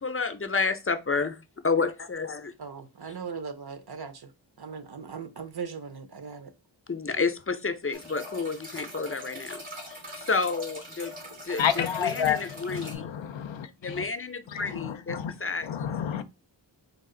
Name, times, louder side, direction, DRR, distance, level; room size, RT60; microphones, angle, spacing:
voice 1, 0.0-1.3 1.6-2.5 6.9-11.2 11.4-13.1 13.8-16.2, left 4 dB, 30° left, 0.5 m, -30 dB
voice 2, 2.6-4.3 4.6-6.5, right 6 dB, 55° right, 0.6 m, -39 dB
sound 1, 7.9-12.9, left 1 dB, 85° right, 2.1 m, -42 dB
voice 3, 11.6-14.0 14.5-15.3 15.6-16.2, left 8 dB, 80° left, 0.5 m, -30 dB
4.1 x 2.4 x 3.7 m
wide cardioid pair, 65°, 46 cm